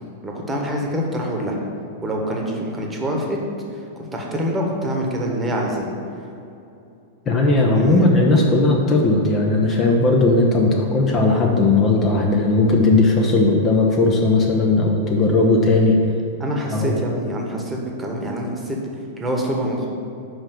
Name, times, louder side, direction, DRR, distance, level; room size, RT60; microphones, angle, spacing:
voice 1, 0.2-1.6 2.0-3.4 3.7-5.9 7.7-8.1 16.4-18.8 19.2-19.9, equal, 15° right, 0 dB, 1.3 m, -25 dB
voice 2, 7.3-16.0 16.7-17.0, left 2 dB, 25° left, 0 dB, 0.9 m, -17 dB
5.7 x 5.6 x 6.9 m, 2.7 s
figure-of-eight pair, 95°, 0 cm